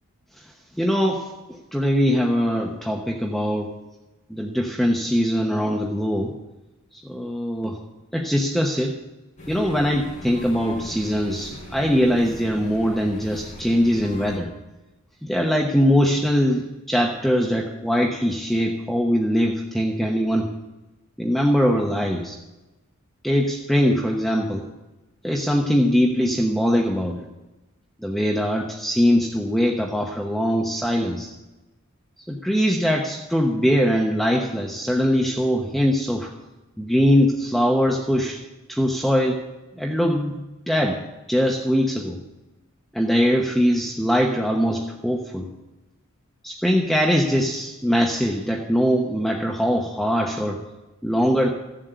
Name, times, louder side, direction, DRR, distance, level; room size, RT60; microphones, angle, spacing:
voice 1, 0.8-1.3 1.7-3.7 4.3-6.3 7.0-7.8 8.1-8.9 9.5-14.5 15.2-20.5 21.2-22.4 23.2-24.6 25.2-27.2 28.0-31.3 32.3-36.3 36.8-38.4 38.7-39.4 39.8-40.4 40.7-41.0 41.3-42.2 42.9-45.5 46.4-50.6 51.0-51.5, equal, ahead, 0 dB, 1.0 m, -21 dB
sound 1, 9.4-14.4, left 1 dB, 35° left, 4.1 m, -40 dB
15.0 x 7.6 x 8.1 m, 1.0 s
head